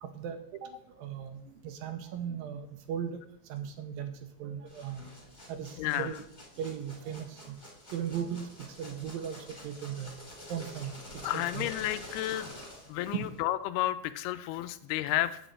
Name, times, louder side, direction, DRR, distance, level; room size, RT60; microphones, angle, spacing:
voice 1, 0.0-3.2 3.5-4.1 4.4-5.1 5.5-6.2 6.6-7.6 7.9-10.1 10.5-11.0 11.3-11.7 13.1-13.3, right 8 dB, 75° right, 8 dB, 2.4 m, -37 dB
sound 1, 4.6-13.4, left 1 dB, 15° left, 2.4 m, -48 dB
voice 2, 5.8-6.1 11.2-12.6 12.9-15.4, left 14 dB, 85° left, 13 dB, 2.5 m, -31 dB
8.1 x 6.2 x 8.0 m, 0.70 s
omnidirectional pair, 4.5 m